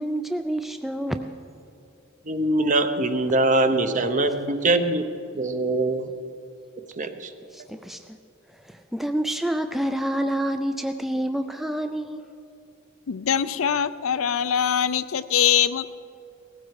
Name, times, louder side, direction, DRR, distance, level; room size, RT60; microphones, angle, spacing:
voice 1, 0.0-1.4 7.5-8.2 8.5-12.3, right 1 dB, ahead, 7 dB, 0.4 m, -28 dB
voice 2, 2.3-5.1 5.3-6.1 7.0-7.3, right 2 dB, 40° right, 8 dB, 0.9 m, -23 dB
voice 3, 13.1-15.9, left 9 dB, 85° left, 14 dB, 0.5 m, -23 dB
18.0 x 15.0 x 4.8 m, 2.6 s
head